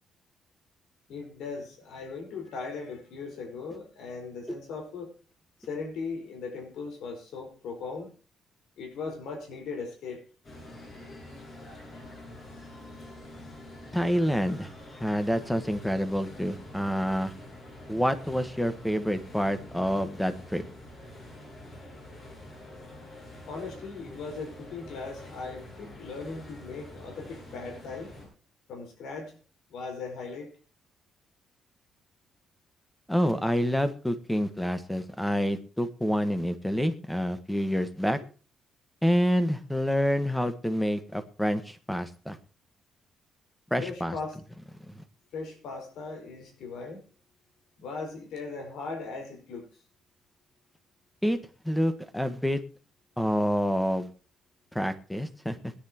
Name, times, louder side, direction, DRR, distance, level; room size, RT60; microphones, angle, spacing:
voice 1, 1.1-5.2 5.6-8.1 8.8-10.2 23.5-28.1 28.7-29.3 29.7-30.5 43.8-44.4 45.3-47.0 47.8-49.7, left 4 dB, 80° left, 3 dB, 4.9 m, -38 dB
sound 1, 10.4-28.3, left 1 dB, 40° left, 7.7 m, -46 dB
voice 2, 13.9-14.7 15.0-17.3 17.9-20.6 33.1-38.2 39.0-42.4 43.7-44.1 44.9-45.0 51.2-51.4 51.6-52.6 53.2-54.1 54.7-55.7, equal, 5° left, 10 dB, 1.4 m, -27 dB
21.0 x 10.0 x 3.0 m, 0.38 s
cardioid pair, 140°, 0 cm